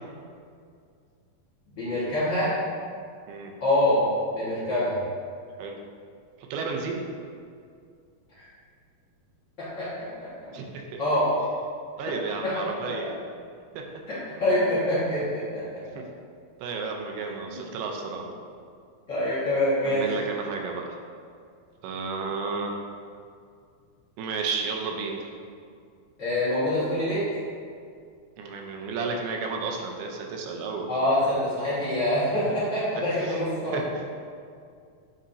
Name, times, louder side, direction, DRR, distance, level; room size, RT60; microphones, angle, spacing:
voice 1, 1.7-2.5 3.6-4.1 4.3-5.0 8.3-8.4 9.6-10.1 11.0-11.3 12.4-13.1 14.1-15.6 17.5-17.6 19.1-20.1 26.2-27.3 30.9-34.0, left 1 dB, 80° left, -11 dB, 1.0 m, -25 dB
voice 2, 6.5-7.0 10.5-11.0 12.0-13.1 13.7-13.8 16.0-16.1 16.6-18.3 19.8-21.0 21.8-22.8 24.2-25.3 28.4-30.9 33.2-33.4 33.7-34.1, right 4 dB, 85° right, 2 dB, 2.6 m, -32 dB
9.0 x 4.2 x 2.6 m, 2.2 s
omnidirectional pair, 4.5 m